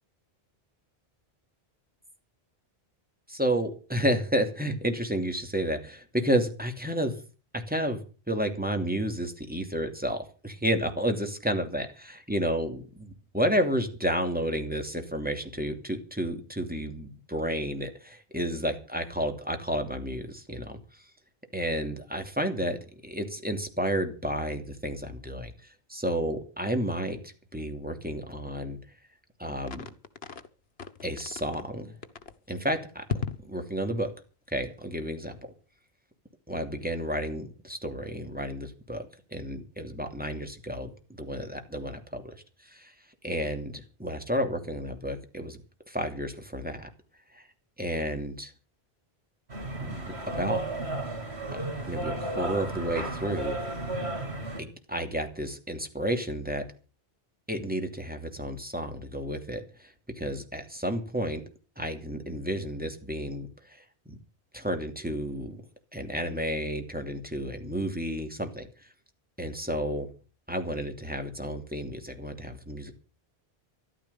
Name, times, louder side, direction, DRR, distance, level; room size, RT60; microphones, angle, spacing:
voice 1, 3.3-7.2 7.5-8.0 8.3-21.1 21.5-28.8 29.4-29.9 31.0-31.9 32.5-33.0 33.4-34.1 34.5-35.4 36.5-42.4 42.6-42.9 43.2-45.6 45.9-46.9 47.3-47.5 47.8-48.5 49.8-50.6 51.5-53.6 54.6-56.6 57.5-61.4 61.8-64.2 64.5-65.6 65.9-68.9 69.4-70.1 70.5-72.9, equal, 10° right, 5 dB, 2.9 m, -31 dB
sound 1, 29.6-30.5 30.8-31.6 32.0-32.4 33.1-33.5, left 6 dB, 70° left, 1.5 m, -36 dB
sound 2, 49.5-54.6, right 2 dB, 85° right, 4.2 m, -33 dB
14.0 x 12.0 x 7.1 m, 0.36 s
omnidirectional pair, 1.1 m